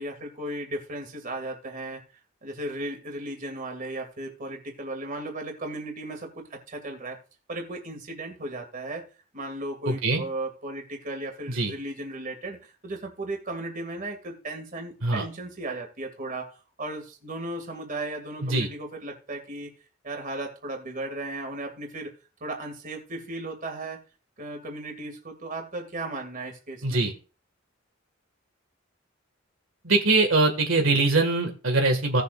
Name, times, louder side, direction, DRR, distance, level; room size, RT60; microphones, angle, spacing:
voice 1, 0.0-2.0 2.4-7.2 7.5-9.1 9.3-19.7 20.0-22.1 22.4-24.0 24.4-27.0, right 2 dB, 40° right, 3 dB, 2.4 m, -36 dB
voice 2, 9.9-10.2 11.5-11.7 15.0-15.2 18.4-18.7 26.8-27.1 29.8-32.2, right 3 dB, 80° right, 3 dB, 2.0 m, -22 dB
17.5 x 6.9 x 2.5 m, 0.35 s
head